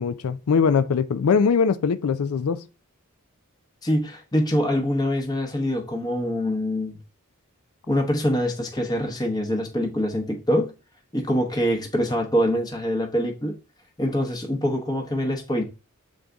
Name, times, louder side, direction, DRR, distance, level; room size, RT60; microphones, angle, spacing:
voice 1, 0.0-2.6, left 6 dB, 70° left, 0.4 m, -21 dB
voice 2, 3.8-7.0 7.9-10.7 11.1-13.5 14.0-15.6, equal, 20° left, 0.9 m, -24 dB
7.5 x 3.8 x 3.4 m
head